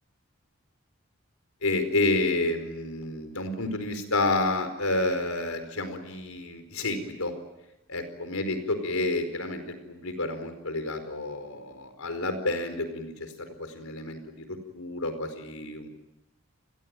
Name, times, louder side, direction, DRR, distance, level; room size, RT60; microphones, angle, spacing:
voice 1, 1.6-7.3 7.9-13.3 13.6-15.9, left 2 dB, 85° left, 8 dB, 4.7 m, -30 dB
29.5 x 21.0 x 9.0 m, 0.92 s
head